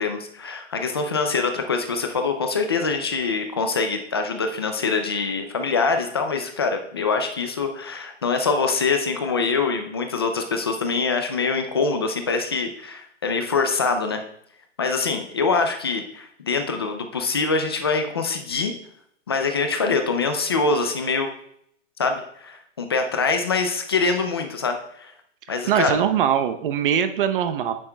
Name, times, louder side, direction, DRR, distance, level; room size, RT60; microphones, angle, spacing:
voice 1, 0.0-14.2 14.8-18.7 19.3-21.3 22.0-25.1 25.5-26.0, left 4 dB, 20° left, 6 dB, 0.3 m, -24 dB
voice 2, 25.7-27.7, right 9 dB, 45° right, 9 dB, 0.8 m, -22 dB
9.7 x 8.4 x 2.2 m, 0.70 s
hypercardioid pair, 155°, 38 cm